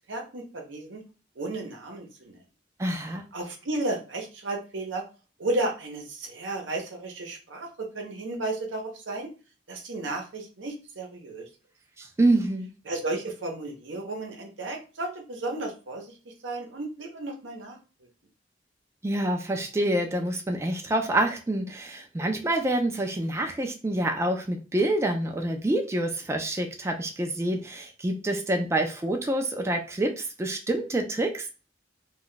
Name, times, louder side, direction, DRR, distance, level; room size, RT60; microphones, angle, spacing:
voice 1, 0.1-1.0 1.4-2.4 3.3-5.0 5.4-9.3 9.7-11.4 12.9-17.8, right 2 dB, 85° right, 2 dB, 0.7 m, -33 dB
voice 2, 2.8-3.2 12.0-12.7 19.0-31.5, right 1 dB, 15° right, 3 dB, 0.3 m, -27 dB
2.2 x 2.2 x 3.7 m, 0.33 s
head